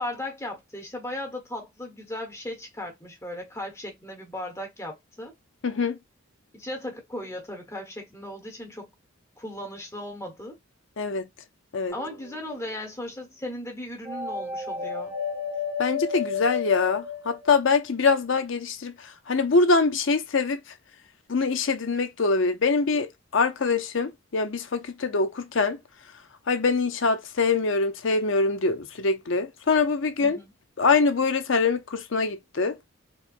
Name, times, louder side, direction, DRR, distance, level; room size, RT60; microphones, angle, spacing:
voice 1, 0.0-5.3 6.5-8.9 9.4-10.6 11.9-15.2 30.2-30.5, left 1 dB, 15° left, 1.1 m, -36 dB
voice 2, 5.6-6.0 11.0-11.3 11.7-11.9 15.8-20.6 21.3-23.1 23.3-25.8 26.5-30.4 30.8-32.8, left 4 dB, 65° left, 0.7 m, -24 dB
sound 1, 11.9-12.6 14.0-17.9, left 6 dB, 10° right, 0.7 m, -32 dB
4.4 x 2.2 x 2.5 m
head